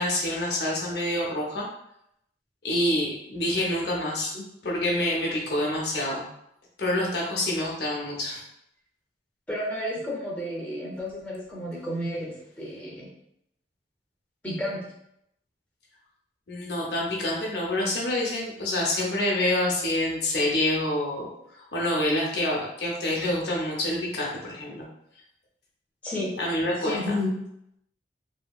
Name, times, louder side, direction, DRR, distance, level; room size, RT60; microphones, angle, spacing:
voice 1, 0.0-1.7 2.6-4.3 4.6-6.2 6.8-8.4 16.5-24.9 26.4-27.2, left 1 dB, 65° left, -2 dB, 0.7 m, -27 dB
voice 2, 9.5-13.1 14.4-14.8 26.0-26.3 26.8-27.4, left 1 dB, 10° left, -5 dB, 0.6 m, -31 dB
2.8 x 2.7 x 2.3 m, 0.77 s
head